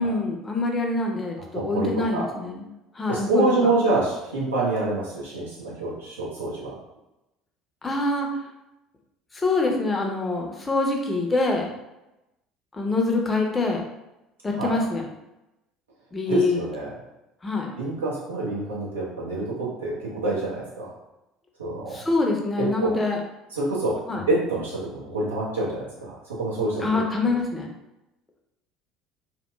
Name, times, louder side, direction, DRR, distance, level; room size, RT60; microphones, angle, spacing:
voice 1, 0.0-2.7 3.0-3.5 7.8-8.3 9.3-11.7 12.8-13.8 14.4-15.1 16.1-16.6 17.4-17.7 21.9-23.2 24.1-24.2 26.8-27.7, left 3 dB, 20° left, 1 dB, 0.6 m, -25 dB
voice 2, 1.5-2.3 3.1-6.7 14.5-14.8 16.3-16.9 17.8-20.9 21.6-22.0 22.6-22.9 23.5-26.9 27.2-27.3, right 2 dB, 80° right, -7 dB, 0.8 m, -27 dB
2.8 x 2.1 x 2.2 m, 0.94 s
figure-of-eight pair, 60°, 0 cm